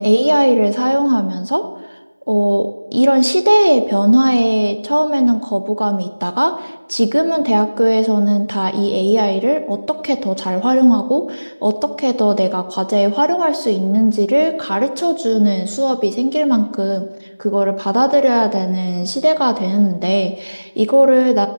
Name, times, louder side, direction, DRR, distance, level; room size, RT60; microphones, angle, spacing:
voice 1, 0.0-1.7 2.3-17.1 17.4-21.5, equal, 90° right, 11 dB, 0.9 m, -16 dB
16.5 x 7.9 x 6.9 m, 1.2 s
figure-of-eight pair, 180°, 0 cm